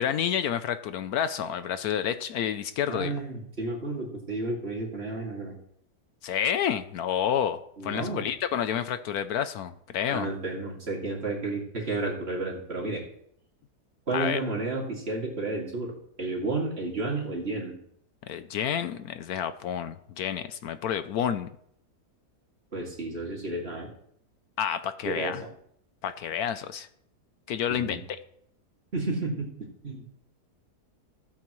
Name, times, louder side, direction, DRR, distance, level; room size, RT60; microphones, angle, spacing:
voice 1, 0.0-3.1 6.2-10.3 14.1-14.4 18.3-21.5 24.6-25.4 26.0-26.9 27.5-28.2, left 9 dB, 70° left, 11 dB, 1.1 m, -29 dB
voice 2, 2.9-5.5 7.8-8.3 10.1-13.0 14.1-15.9 16.2-17.7 22.7-23.9 25.1-25.3 27.7-28.0 28.9-29.5 29.8-30.0, right 2 dB, 40° right, -2 dB, 2.6 m, -31 dB
15.5 x 8.7 x 3.1 m, 0.69 s
omnidirectional pair, 1.7 m